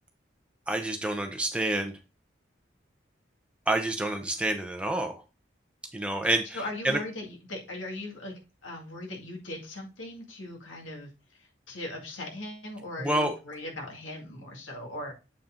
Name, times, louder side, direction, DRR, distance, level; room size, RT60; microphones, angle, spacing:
voice 1, 0.7-1.9 3.7-5.2 5.9-7.0 13.0-13.3, right 1 dB, 5° right, 4 dB, 0.9 m, -28 dB
voice 2, 6.5-8.3 8.6-11.1 11.7-15.1, left 1 dB, 85° left, 1 dB, 2.1 m, -39 dB
7.3 x 4.2 x 3.8 m, 0.29 s
head